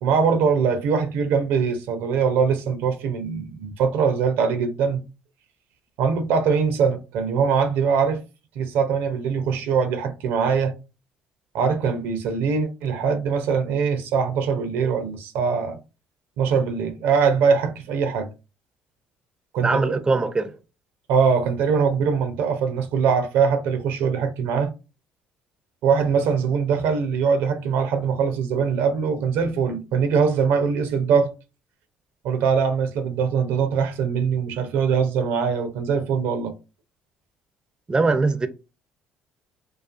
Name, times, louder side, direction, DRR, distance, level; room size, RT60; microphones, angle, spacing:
voice 1, 0.0-5.0 6.0-8.2 8.6-10.7 11.5-15.8 16.4-18.3 19.5-20.0 21.1-24.7 25.8-31.3 32.2-36.5, right 6 dB, 70° right, 0.5 m, -22 dB
voice 2, 19.6-20.5 37.9-38.5, right 3 dB, 20° right, 0.4 m, -21 dB
2.4 x 2.4 x 2.4 m
hypercardioid pair, 65°, 4 cm